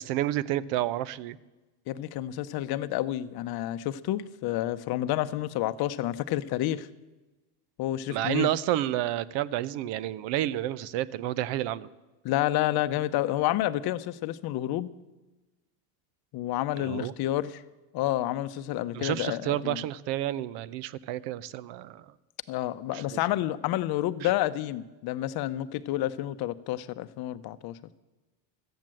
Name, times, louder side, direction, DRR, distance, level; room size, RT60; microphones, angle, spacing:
voice 1, 0.0-1.4 8.1-11.9 16.8-17.1 18.9-22.1 22.9-23.2 24.2-24.3, right 13 dB, 60° right, 19 dB, 0.7 m, -30 dB
voice 2, 1.9-6.9 7.8-8.5 12.2-14.9 16.3-17.6 17.9-19.8 22.5-27.8, left 14 dB, 50° left, 13 dB, 0.7 m, -29 dB
13.5 x 9.2 x 7.6 m, 1.1 s
supercardioid pair, 110°, 48 cm